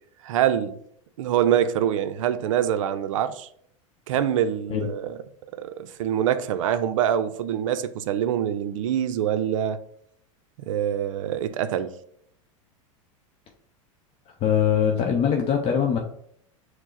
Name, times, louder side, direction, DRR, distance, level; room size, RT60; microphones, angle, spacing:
voice 1, 0.2-0.8 1.2-3.5 4.1-5.2 5.6-9.8 10.7-11.9, right 10 dB, 75° right, 0.4 m, -25 dB
voice 2, 14.4-16.0, left 8 dB, 35° left, 0.6 m, -22 dB
4.7 x 2.0 x 3.9 m
hypercardioid pair, 105°, 17 cm